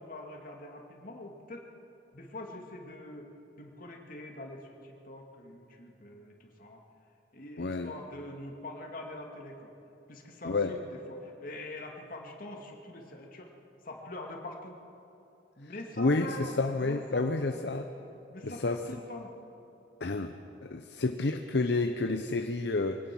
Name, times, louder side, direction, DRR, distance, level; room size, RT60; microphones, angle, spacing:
voice 1, 0.0-1.7 2.1-3.3 3.6-6.8 7.3-9.7 10.1-13.5 13.8-14.8 15.6-17.6 18.3-19.3 21.0-21.1, left 1 dB, 50° left, 1 dB, 2.3 m, -44 dB
voice 2, 7.6-7.9 10.4-10.7 16.0-17.9 18.4-18.8 20.0-20.3 20.6-23.0, left 3 dB, 65° left, 6 dB, 0.8 m, -29 dB
23.5 x 17.5 x 6.2 m, 2.9 s
head